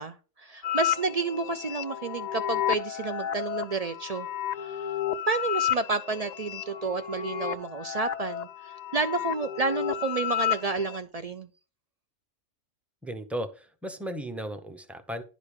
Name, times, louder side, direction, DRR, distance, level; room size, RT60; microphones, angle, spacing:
voice 1, 0.0-4.3 4.6-4.9 5.3-11.5, right 4 dB, 60° right, 0.4 m, -30 dB
sound 1, 0.6-11.0, left 11 dB, 60° left, 0.5 m, -32 dB
voice 2, 13.0-15.2, equal, ahead, 0.6 m, -35 dB
10.5 x 5.1 x 5.0 m
omnidirectional pair, 1.2 m